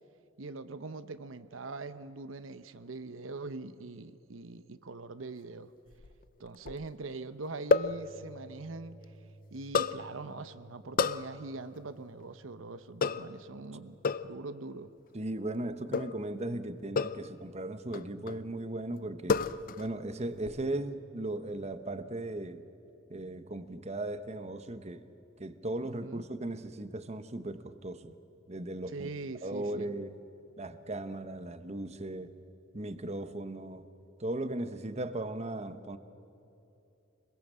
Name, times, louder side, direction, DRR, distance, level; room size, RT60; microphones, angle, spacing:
voice 1, 0.4-5.7 6.4-9.0 9.5-14.9 25.8-26.2 28.9-29.9, right 3 dB, 85° right, 12 dB, 0.8 m, -43 dB
sound 1, 5.9-6.9 7.7-8.0 9.7-10.0 11.0-11.3 13.0-13.4 14.0-14.3 15.9-16.2 17.0-17.3 17.9-18.4 19.3-19.9 20.2-20.6, left 4 dB, 45° left, 0.5 m, -30 dB
Bass guitar, 7.9-14.1, right 1 dB, 60° left, 4.1 m, -57 dB
voice 2, 15.1-19.4 19.8-22.6 23.1-25.0 25.4-28.1 28.5-29.1 29.4-30.2 30.6-32.3 32.7-33.9 34.2-36.0, right 1 dB, 35° right, 11 dB, 1.0 m, -37 dB
26.0 x 21.5 x 7.5 m, 2.9 s
head